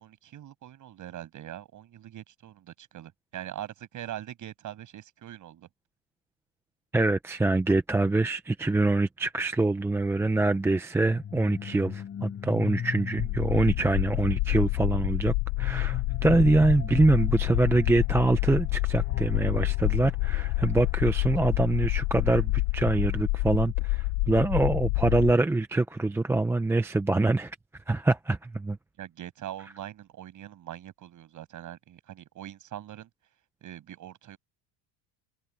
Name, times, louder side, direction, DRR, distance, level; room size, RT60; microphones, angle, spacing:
voice 1, 0.0-5.7 29.0-33.1 33.6-34.4, right 12 dB, 40° right, 6.5 m, -42 dB
voice 2, 6.9-27.6 27.9-28.8, right 2 dB, 5° right, 0.5 m, -25 dB
sound 1, 11.0-22.8, left 8 dB, 30° left, 6.2 m, -40 dB
sound 2, 13.2-25.3, left 22 dB, 70° left, 1.1 m, -28 dB
cardioid pair, 155°, 48 cm